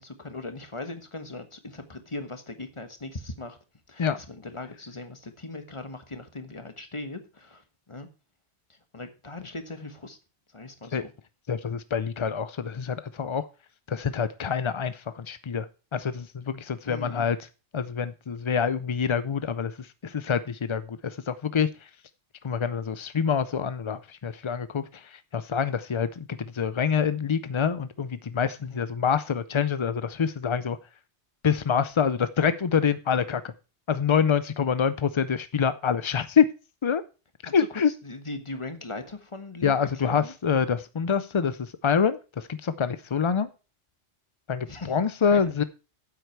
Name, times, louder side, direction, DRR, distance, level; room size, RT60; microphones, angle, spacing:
voice 1, 0.0-3.6 3.9-7.6 7.9-8.1 8.9-10.2 10.5-11.1 16.8-17.2 28.6-28.8 37.4-37.7 38.0-40.3 44.7-45.0 45.3-45.5, left 2 dB, 25° left, 1.3 m, -39 dB
voice 2, 11.5-13.5 13.9-17.4 17.7-21.7 22.4-26.3 26.5-30.8 31.4-33.4 33.9-36.5 36.8-37.0 37.4-37.9 39.6-43.5 44.5-45.6, left 6 dB, 50° left, 0.3 m, -26 dB
9.7 x 8.1 x 4.5 m
omnidirectional pair, 1.2 m